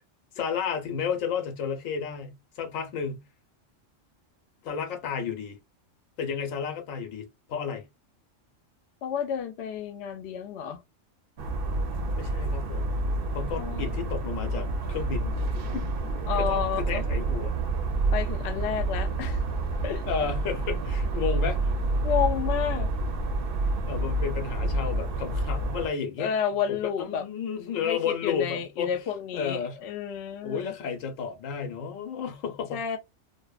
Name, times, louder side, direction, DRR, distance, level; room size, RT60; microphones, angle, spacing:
voice 1, 0.3-3.2 4.6-5.6 6.2-7.8 12.1-13.0 13.3-15.4 15.7-15.9 16.3-17.5 20.1-21.7 23.9-26.3 26.7-28.9 29.3-29.8 30.4-32.8, left 7 dB, 85° left, 1.1 m, -32 dB
voice 2, 9.0-10.8 13.5-13.9 16.3-17.0 18.1-19.4 19.8-20.0 22.0-22.9 26.2-27.3 27.8-30.7 32.7-33.0, left 8 dB, 65° left, 0.8 m, -30 dB
sound 1, 11.4-25.9, right 2 dB, 60° right, 0.6 m, -28 dB
2.8 x 2.1 x 2.3 m
omnidirectional pair, 1.3 m